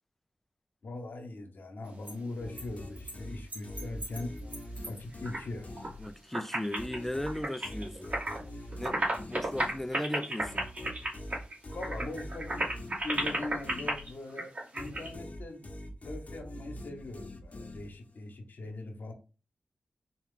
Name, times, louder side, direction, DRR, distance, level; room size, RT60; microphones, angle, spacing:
voice 1, 0.8-4.4 4.8-5.7 11.7-12.6 13.0-15.7 16.0-19.1, left 2 dB, 75° left, 1.0 m, -41 dB
sound 1, 1.8-2.1 2.6-2.7 3.0-3.2 3.5-5.4 5.7-6.1 6.3-8.4 8.7-15.1, right 1 dB, 50° right, 2.0 m, -35 dB
sound 2, 2.4-6.4 6.8-14.4 14.8-18.2, left 1 dB, 45° left, 0.8 m, -44 dB
voice 2, 6.0-8.2 8.8-10.7, left 1 dB, 10° left, 0.4 m, -37 dB
4.2 x 2.3 x 3.7 m
cardioid pair, 40°, 3 cm